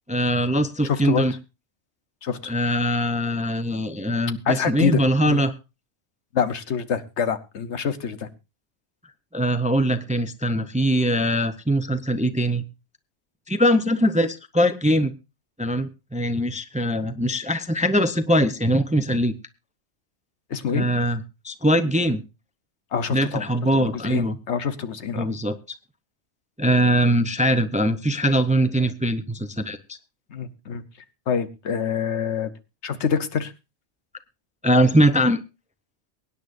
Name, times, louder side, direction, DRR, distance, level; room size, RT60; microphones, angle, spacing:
voice 1, 0.1-1.3 2.5-5.5 9.3-12.6 13.5-15.1 15.6-19.3 20.7-22.2 23.1-24.4 25.2-25.8 26.6-30.0 34.6-35.4, equal, 10° right, 11 dB, 0.6 m, -22 dB
voice 2, 0.8-1.2 2.2-2.5 4.4-5.4 6.3-8.3 20.5-20.9 22.9-23.4 23.7-25.3 30.3-30.8 31.3-32.5 32.8-33.5, left 7 dB, 75° left, 12 dB, 1.3 m, -26 dB
23.5 x 9.9 x 2.6 m, 0.28 s
omnidirectional pair, 1.2 m